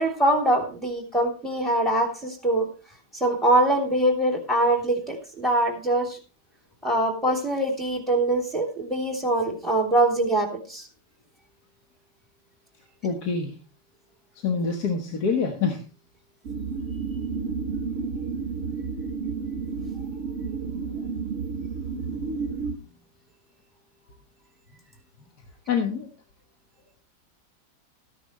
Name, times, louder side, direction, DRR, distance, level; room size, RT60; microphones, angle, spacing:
voice 1, 0.0-2.7 3.1-6.2 6.8-10.9, right 1 dB, ahead, 1 dB, 3.1 m, -23 dB
voice 2, 13.0-13.5 14.4-15.8 25.7-26.1, left 5 dB, 70° left, 3 dB, 1.9 m, -26 dB
sound 1, 16.4-22.8, right 5 dB, 60° right, 0.9 m, -31 dB
14.0 x 10.0 x 3.1 m, 0.36 s
omnidirectional pair, 1.8 m